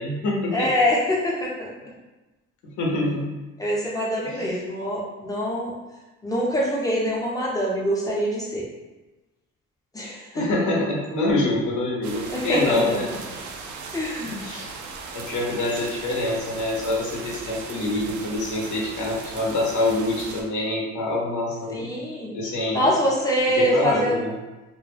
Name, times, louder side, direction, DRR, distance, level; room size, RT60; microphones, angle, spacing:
voice 1, 0.0-0.7 2.6-3.3 4.2-4.6 10.3-13.1 14.2-14.7 15.1-21.9 22.3-22.9 23.6-24.3, left 2 dB, 75° left, -3 dB, 0.8 m, -26 dB
voice 2, 0.5-1.7 3.6-5.7 6.2-8.7 9.9-10.5 12.3-13.0 13.9-14.4 21.7-22.3 22.7-24.2, equal, 10° left, -5 dB, 0.7 m, -24 dB
sound 1, 12.0-20.4, right 4 dB, 75° right, 0.5 m, -38 dB
2.2 x 2.2 x 3.2 m, 1.1 s
cardioid pair, 90°, 30 cm